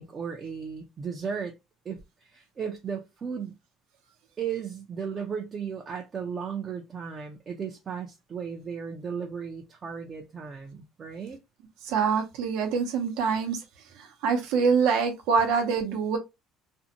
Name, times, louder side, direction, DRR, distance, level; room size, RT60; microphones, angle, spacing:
voice 1, 0.0-1.5 1.9-3.5 4.4-11.4, right 6 dB, 25° right, 0.4 m, -35 dB
voice 2, 11.8-13.6 14.0-16.2, right 5 dB, 80° right, 0.6 m, -25 dB
2.5 x 2.1 x 2.7 m
cardioid pair, 175°, 0 cm